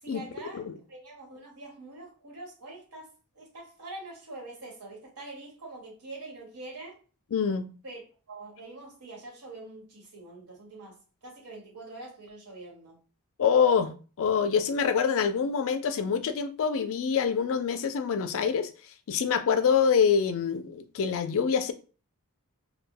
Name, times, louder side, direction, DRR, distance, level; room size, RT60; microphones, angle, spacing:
voice 1, 0.0-7.0 7.8-8.0 8.3-13.0, right 2 dB, 80° right, 1.3 m, -44 dB
voice 2, 7.3-7.6 13.4-18.7 19.1-21.7, left 6 dB, 65° left, 0.4 m, -25 dB
2.2 x 2.1 x 3.5 m
head